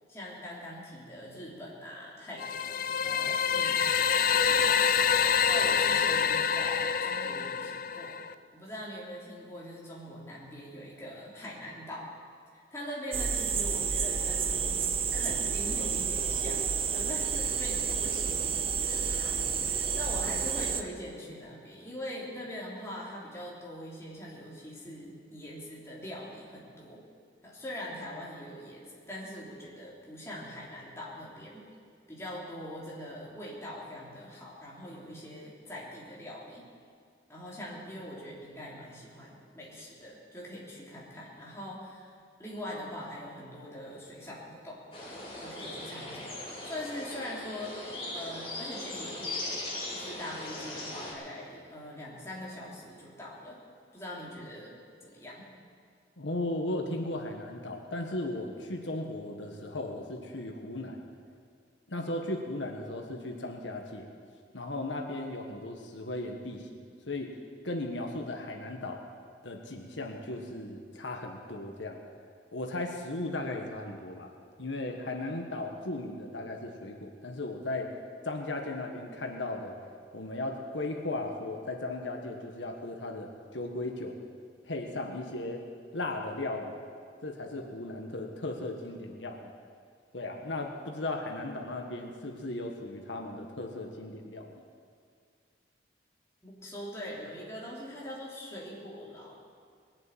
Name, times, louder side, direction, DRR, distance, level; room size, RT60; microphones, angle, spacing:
voice 1, 0.1-8.2 8.5-12.1 12.5-14.8 15.1-27.1 27.4-31.7 32.1-36.7 37.3-44.8 45.4-49.5 49.9-53.6 53.9-55.5 96.4-99.3, left 1 dB, 15° left, -6 dB, 3.3 m, -42 dB
sound 1, 2.4-8.3, left 7 dB, 50° left, 0.5 m, -26 dB
sound 2, 13.1-20.8, right 6 dB, 30° right, 0.7 m, -30 dB
sound 3, 44.9-51.1, left 2 dB, 30° left, 3.3 m, -39 dB
voice 2, 56.2-61.0 61.9-64.1 64.5-66.7 67.1-67.3 67.6-69.0 69.4-72.0 72.5-74.3 74.6-77.9 78.2-79.7 80.1-84.2 84.6-85.6 85.9-86.7 87.2-89.5 90.1-94.5, left 2 dB, 90° left, 2 dB, 1.6 m, -36 dB
20.5 x 7.8 x 9.1 m, 2.1 s
head